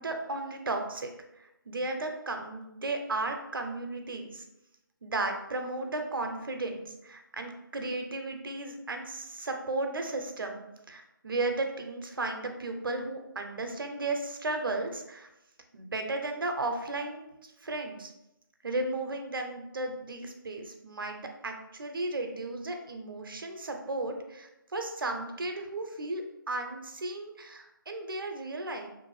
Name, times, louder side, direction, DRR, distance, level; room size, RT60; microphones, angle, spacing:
voice 1, 0.0-4.5 5.0-15.3 15.7-18.1 18.6-28.9, right 2 dB, 70° right, 4 dB, 0.5 m, -35 dB
2.6 x 2.4 x 3.1 m, 0.89 s
figure-of-eight pair, 160°, 12 cm